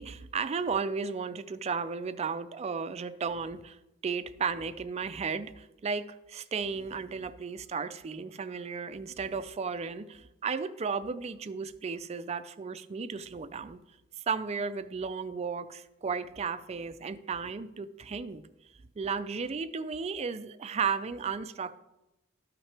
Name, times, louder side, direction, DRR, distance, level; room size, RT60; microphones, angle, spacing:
voice 1, 0.0-3.8 4.0-13.8 14.3-18.4 19.0-21.8, right 5 dB, 30° right, 0.4 m, -34 dB
13.0 x 5.8 x 3.3 m
head